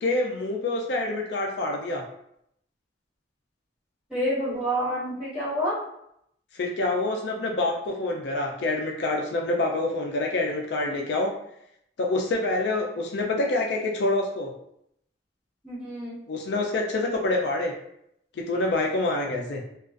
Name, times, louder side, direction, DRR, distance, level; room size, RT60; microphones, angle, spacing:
voice 1, 0.0-2.0 6.5-11.3 12.0-14.5 16.3-17.7 18.4-19.6, left 2 dB, 65° left, 1 dB, 0.4 m, -26 dB
voice 2, 4.1-5.8 15.6-16.2, equal, 5° right, -12 dB, 1.5 m, -28 dB
2.4 x 2.3 x 2.4 m, 0.75 s
head